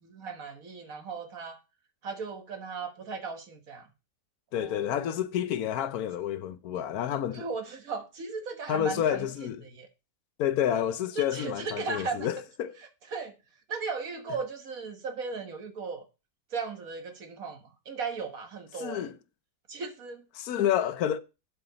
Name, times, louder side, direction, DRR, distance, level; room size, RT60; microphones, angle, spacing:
voice 1, 0.0-1.6 2.0-3.9 4.5-5.1 7.3-9.3 9.6-9.9 11.2-12.3 13.1-13.4 13.7-16.0 16.5-17.6 17.9-19.1 19.7-20.2, right 4 dB, 70° right, 1.8 m, -36 dB
voice 2, 4.5-7.4 8.7-9.6 10.4-12.7 18.8-19.2 20.3-21.2, left 10 dB, 80° left, 1.2 m, -29 dB
11.5 x 5.0 x 3.9 m
omnidirectional pair, 1.6 m